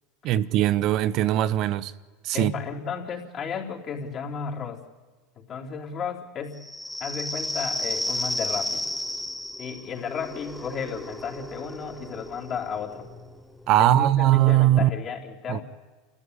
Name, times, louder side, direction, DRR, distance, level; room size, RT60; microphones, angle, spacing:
voice 1, 0.2-1.9 2.2-2.5 13.7-14.9 15.5-15.6, right 13 dB, 55° right, 0.9 m, -20 dB
voice 2, 2.3-4.8 5.4-6.6 7.0-8.9 9.6-13.1 13.8-15.6, left 6 dB, 40° left, 4.0 m, -33 dB
sound 1, 6.6-13.8, left 1 dB, 5° left, 1.4 m, -33 dB
28.0 x 14.0 x 9.9 m
hypercardioid pair, 105°, 0 cm